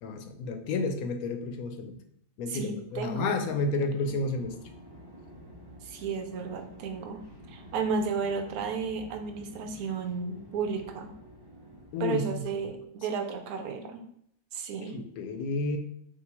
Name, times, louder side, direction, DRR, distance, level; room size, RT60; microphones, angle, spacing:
voice 1, 0.0-2.0 2.4-4.6 11.9-12.4 14.8-15.8, left 3 dB, 90° left, 7 dB, 1.1 m, -31 dB
voice 2, 2.5-3.5 3.8-3.9 5.8-7.2 7.5-11.1 12.0-14.0 14.5-15.0, right 5 dB, 90° right, 6 dB, 1.1 m, -33 dB
sound 1, 3.9-12.8, equal, 25° right, 0.5 m, -50 dB
5.3 x 2.4 x 3.3 m, 0.70 s
omnidirectional pair, 1.5 m